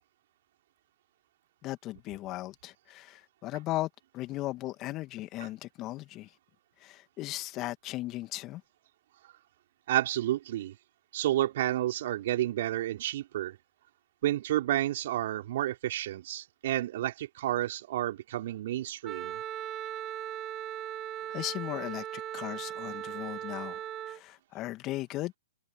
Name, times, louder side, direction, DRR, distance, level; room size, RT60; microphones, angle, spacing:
voice 1, 1.6-6.3 6.8-8.6 21.3-25.3, left 17 dB, 30° left, 2.2 m, -37 dB
voice 2, 9.9-10.8 11.1-13.6 14.2-19.4, right 13 dB, 55° right, 5.3 m, -30 dB
Wind instrument woodwind instrument, 19.0-24.2, right 12 dB, 25° right, 2.4 m, -38 dB
figure-of-eight pair, 120°, 0 cm